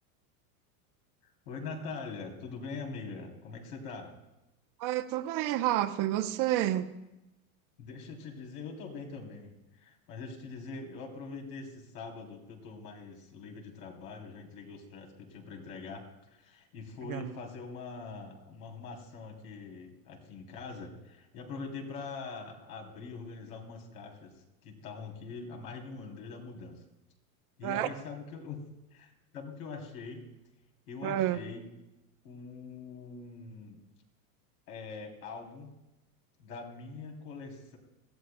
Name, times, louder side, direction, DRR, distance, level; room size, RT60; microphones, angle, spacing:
voice 1, 1.4-4.1 7.8-26.8 27.6-28.6 28.9-30.3 30.9-31.6 32.2-33.8 34.7-35.8 36.4-37.8, left 4 dB, 80° left, 2 dB, 3.2 m, -43 dB
voice 2, 4.8-6.9 17.1-17.3 27.6-27.9 31.0-31.4, right 13 dB, 45° right, 9 dB, 0.8 m, -29 dB
19.5 x 13.0 x 2.2 m, 0.96 s
supercardioid pair, 125°, 44 cm